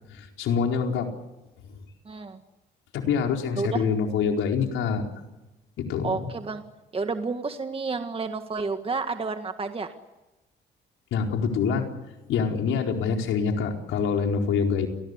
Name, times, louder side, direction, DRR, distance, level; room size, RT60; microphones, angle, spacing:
voice 1, 0.1-1.1 2.9-5.0 5.8-6.3 11.1-11.9 12.3-14.9, left 6 dB, 85° left, 3 dB, 4.5 m, -25 dB
voice 2, 2.1-2.4 3.6-3.8 6.0-6.6 6.9-9.9, right 4 dB, 30° right, 7 dB, 1.9 m, -30 dB
29.5 x 19.5 x 8.2 m, 1.1 s
cardioid pair, 90°, 20 cm